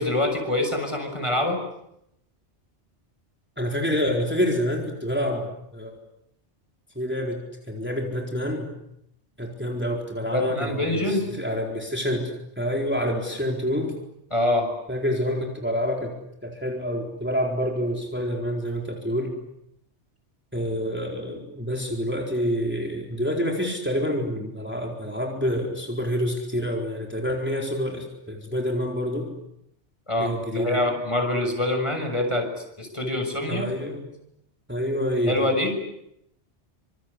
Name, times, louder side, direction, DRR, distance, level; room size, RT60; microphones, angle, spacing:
voice 1, 0.0-1.6 10.3-11.3 14.3-14.7 30.1-32.5 32.8-33.7 35.3-35.8, left 1 dB, 25° left, 5 dB, 6.6 m, -25 dB
voice 2, 3.6-5.5 5.7-6.0 7.0-7.4 7.7-8.7 9.4-12.3 12.6-13.9 14.9-16.1 16.4-19.4 20.5-29.3 30.2-30.8 33.5-34.0 34.7-35.5, equal, 10° right, 0 dB, 4.3 m, -27 dB
27.0 x 26.5 x 8.3 m, 0.79 s
omnidirectional pair, 1.2 m